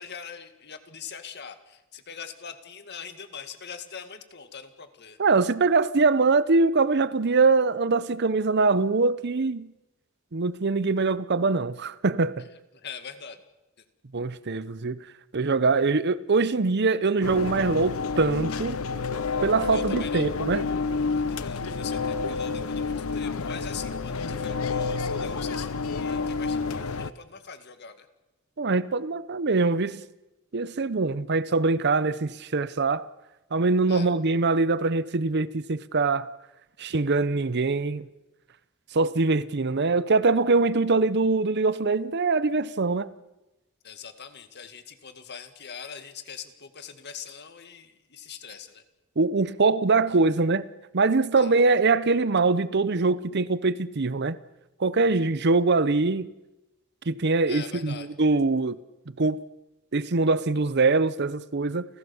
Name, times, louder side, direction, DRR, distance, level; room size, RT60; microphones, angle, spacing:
voice 1, 0.0-5.2 12.4-12.5 12.7-13.4 19.7-20.3 21.3-28.1 33.9-34.1 43.8-48.8 51.3-51.5 57.5-58.1, left 6 dB, 50° left, 2.0 m, -42 dB
voice 2, 5.2-9.7 10.3-12.5 14.1-15.0 15.3-18.8 19.4-20.6 28.6-30.0 30.5-33.0 33.5-36.3 36.8-38.1 38.9-43.1 49.2-50.6 50.9-54.4 54.8-56.3 57.1-58.8 59.2-59.4 59.9-61.9, right 3 dB, 50° right, 0.7 m, -23 dB
sound 1, 17.2-27.1, left 4 dB, 80° left, 0.8 m, -29 dB
29.5 x 16.0 x 7.1 m
head